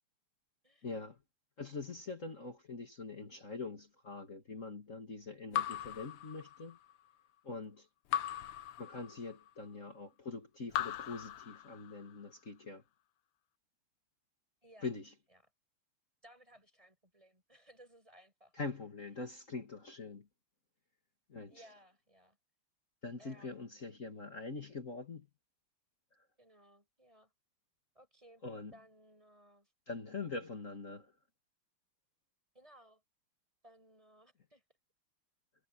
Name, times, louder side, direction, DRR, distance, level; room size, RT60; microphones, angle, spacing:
voice 1, 0.8-1.2 1.6-6.8 7.4-7.9 8.8-12.8 14.8-15.1 18.6-20.3 21.3-21.6 23.0-25.3 28.4-28.7 29.9-31.1, left 3 dB, 35° left, 2.4 m, -43 dB
Raindrop / Drip, 5.5-6.9 8.1-9.5 10.7-12.1, left 11 dB, 80° left, 1.7 m, -39 dB
voice 2, 16.2-18.6 21.5-22.4 23.2-23.7 26.4-27.3 27.9-28.4 28.7-29.7 32.5-33.0 33.6-34.6, right 1 dB, 15° right, 7.8 m, -61 dB
omnidirectional pair, 2.4 m